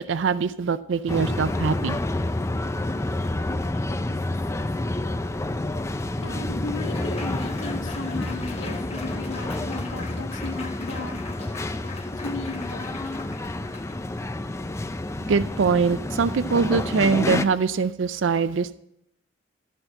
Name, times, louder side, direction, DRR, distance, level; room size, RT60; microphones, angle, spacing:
voice 1, 0.0-2.0 15.3-18.8, right 5 dB, 70° right, 15 dB, 0.4 m, -23 dB
sound 1, 1.1-17.4, left 2 dB, 15° left, 0.4 m, -29 dB
Laughter / Applause, 6.1-14.0, left 3 dB, 35° left, 1.2 m, -41 dB
voice 2, 6.2-11.2 12.1-13.0, left 2 dB, 80° left, 8 dB, 1.0 m, -35 dB
13.0 x 4.5 x 7.7 m, 0.78 s
head